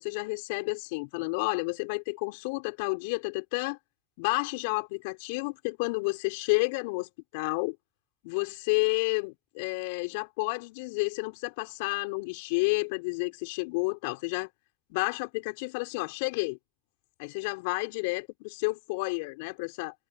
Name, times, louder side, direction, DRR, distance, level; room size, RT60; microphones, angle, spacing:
voice 1, 0.0-3.8 4.2-7.8 8.2-14.5 14.9-16.6 17.2-19.9, left 29 dB, 65° left, 4.7 m, -30 dB
hypercardioid pair, 85°, 0 cm